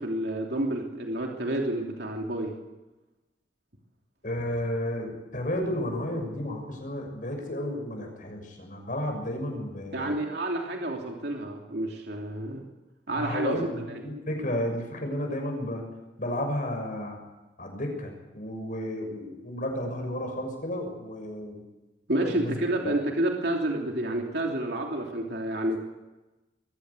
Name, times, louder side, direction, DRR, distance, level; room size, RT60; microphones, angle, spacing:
voice 1, 0.0-2.5 9.9-12.6 13.1-13.6 13.9-14.0 22.1-25.8, right 1 dB, 60° right, 0 dB, 3.2 m, -29 dB
voice 2, 4.2-10.1 13.1-15.8 16.2-17.2 17.6-21.6 22.2-22.6 22.8-22.9, left 1 dB, 45° left, 3 dB, 6.4 m, -32 dB
22.5 x 15.5 x 8.4 m, 1.1 s
head